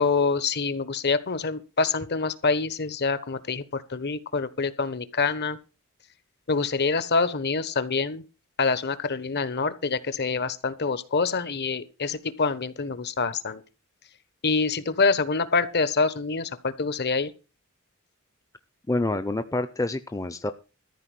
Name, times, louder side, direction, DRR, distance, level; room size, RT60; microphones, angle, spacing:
voice 1, 0.0-5.6 6.5-8.2 8.6-13.6 14.4-17.3, left 4 dB, 50° left, 1.2 m, -26 dB
voice 2, 18.9-20.5, left 2 dB, 15° left, 0.6 m, -27 dB
14.0 x 5.1 x 9.1 m
head